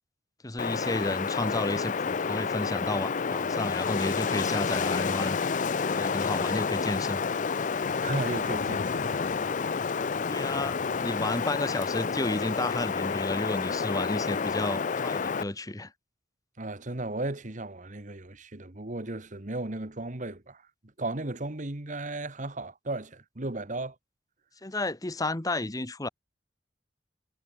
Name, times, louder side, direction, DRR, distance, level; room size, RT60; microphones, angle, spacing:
voice 1, 0.4-5.4 5.9-7.2 10.3-15.9 24.6-26.1, left 2 dB, 20° left, 1.1 m, -32 dB
Wind, 0.6-15.4, left 5 dB, 45° left, 0.5 m, -29 dB
voice 2, 8.0-9.2 16.6-20.6 21.0-23.9, right 2 dB, 45° right, 1.7 m, -35 dB
head